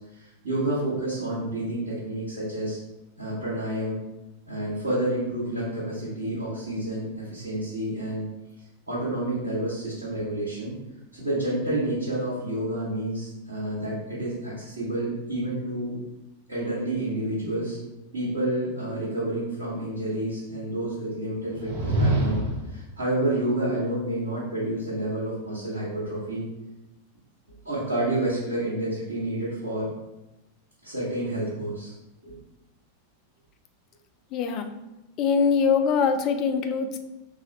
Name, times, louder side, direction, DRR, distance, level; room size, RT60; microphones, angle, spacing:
voice 1, 0.1-2.8 3.2-4.0 4.5-8.3 8.9-10.7 11.1-16.0 16.5-17.8 18.1-26.4 27.6-29.9 30.8-31.9 32.2-32.3, right 1 dB, 75° right, -10 dB, 1.4 m, -29 dB
sound 1, 21.4-22.8, right 1 dB, 50° right, 0.8 m, -25 dB
voice 2, 34.3-34.7 35.2-37.0, left 6 dB, 40° left, 7 dB, 0.4 m, -23 dB
4.7 x 3.0 x 2.9 m, 0.98 s
figure-of-eight pair, 90°, 0 cm